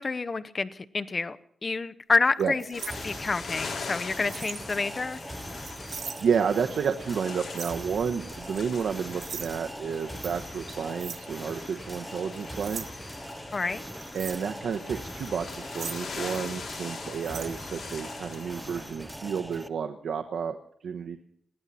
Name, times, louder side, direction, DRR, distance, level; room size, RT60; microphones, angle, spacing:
voice 1, 0.0-1.4 1.6-5.2 13.5-13.8, left 4 dB, 30° left, 13 dB, 0.9 m, -28 dB
sound 1, 2.3-3.6 4.3-4.7 5.1-6.3 6.7-7.0 7.5-7.9 8.4-8.7 9.2-9.6 10.2-10.3 11.0-11.3 11.6-11.7 12.2-12.9 14.0-14.5 15.3-16.6 16.8-16.9 17.2-17.5, right 6 dB, 55° right, 1.0 m, -40 dB
sound 2, 2.7-18.9, left 5 dB, 55° left, 4.3 m, -42 dB
sound 3, 2.9-19.7, right 1 dB, 5° right, 0.9 m, -41 dB
voice 2, 6.2-13.0 14.1-20.6 20.8-21.2, right 6 dB, 75° right, 6 dB, 1.1 m, -31 dB
21.5 x 15.5 x 4.2 m, 0.63 s
wide cardioid pair, 130°, 0 cm